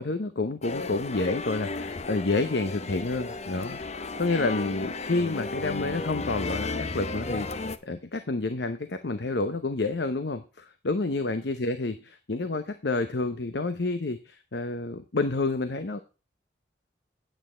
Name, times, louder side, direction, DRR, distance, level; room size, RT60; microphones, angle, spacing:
voice 1, 0.0-16.0, left 3 dB, 65° left, 10 dB, 0.9 m, -29 dB
sound 1, 0.6-7.8, left 3 dB, 40° left, 0.8 m, -34 dB
9.2 x 9.0 x 4.4 m, 0.32 s
head